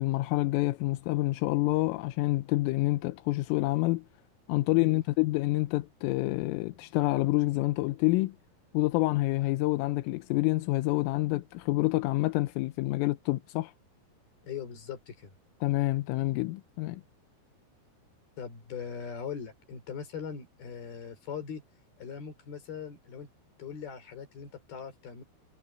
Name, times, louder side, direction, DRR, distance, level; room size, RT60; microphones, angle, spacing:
voice 1, 0.0-4.0 4.5-8.3 8.7-13.7 15.6-17.0, left 20 dB, 85° left, 3.4 m, -27 dB
voice 2, 14.4-15.3 18.4-21.6 22.0-23.3 23.6-25.2, left 7 dB, 50° left, 6.4 m, -40 dB
omnidirectional pair, 5.9 m